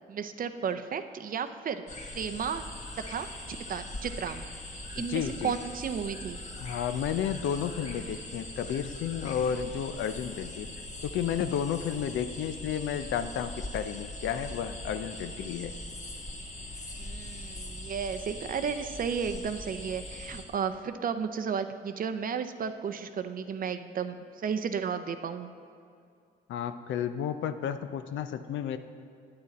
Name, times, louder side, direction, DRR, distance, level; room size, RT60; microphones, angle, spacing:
voice 1, 0.1-1.8 2.1-2.6 3.1-4.5 4.7-6.4 17.0-25.5, right 7 dB, 45° right, 9 dB, 0.5 m, -33 dB
sound 1, 1.9-20.4, left 1 dB, 35° left, 1.4 m, -41 dB
voice 2, 5.0-5.5 6.6-10.7 11.0-15.7 26.5-28.8, left 8 dB, 75° left, 10 dB, 0.5 m, -32 dB
8.9 x 8.5 x 4.1 m, 2.4 s
cardioid pair, 90°, 20 cm